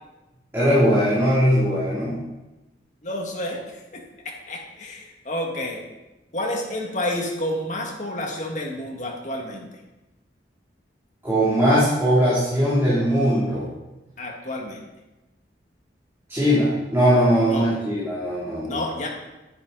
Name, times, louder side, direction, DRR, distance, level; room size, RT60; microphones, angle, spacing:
voice 1, 0.5-2.2 11.2-13.7 16.3-18.7, equal, 15° right, -10 dB, 3.3 m, -20 dB
voice 2, 3.0-3.6 3.9-5.8 6.3-9.7 14.2-14.8 17.5-17.7 18.6-19.1, left 1 dB, 40° left, -1 dB, 2.1 m, -30 dB
10.5 x 10.5 x 4.1 m, 1.0 s
head